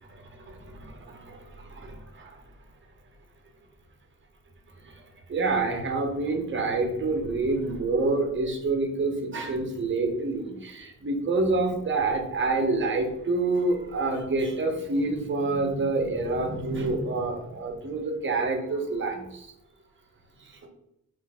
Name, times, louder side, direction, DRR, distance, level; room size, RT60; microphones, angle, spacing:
voice 1, 0.2-2.4 4.8-4.9 5.3-19.5 20.4-20.7, right 3 dB, 35° right, 3 dB, 0.7 m, -27 dB
3.7 x 2.5 x 3.4 m, 0.82 s
wide cardioid pair, 155°, 35 cm